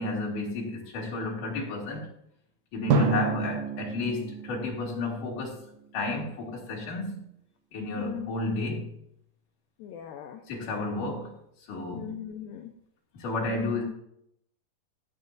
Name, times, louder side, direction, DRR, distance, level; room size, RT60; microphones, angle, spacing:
voice 1, 0.0-2.1 2.7-5.6 5.9-7.2 7.7-8.9 10.5-11.4 11.7-12.2 13.1-13.8, left 2 dB, 50° left, 3.7 m, -32 dB
voice 2, 2.9-3.2 8.0-8.3 9.8-10.4 11.9-12.7, left 11 dB, 90° left, 2.0 m, -39 dB
Drum, 2.9-5.8, right 5 dB, 70° right, 2.4 m, -29 dB
16.0 x 8.1 x 2.6 m
omnidirectional pair, 5.1 m